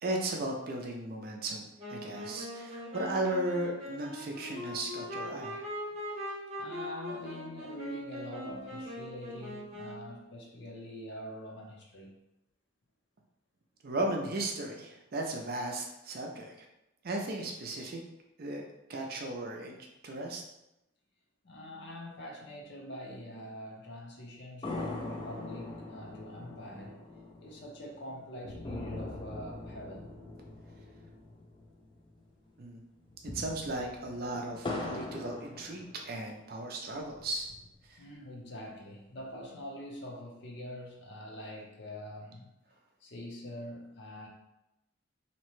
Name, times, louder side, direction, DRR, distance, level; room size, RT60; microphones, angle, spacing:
voice 1, 0.0-5.7 13.8-16.5 17.0-18.0 18.4-19.8 20.0-20.4 32.6-32.8 33.2-37.5 37.9-38.0, right 2 dB, 50° right, 1 dB, 0.4 m, -36 dB
Wind instrument woodwind instrument, 1.8-10.2, left 1 dB, 30° right, 0.8 m, -41 dB
voice 2, 6.2-12.1 21.4-27.1 27.4-30.1 38.0-42.5 43.0-44.3, equal, 60° left, -2 dB, 0.6 m, -44 dB
sound 1, 24.6-32.2 32.5-32.6 33.0-36.4 36.9-37.9, left 2 dB, 25° left, 0.3 m, -42 dB
2.8 x 2.1 x 3.0 m, 0.89 s
head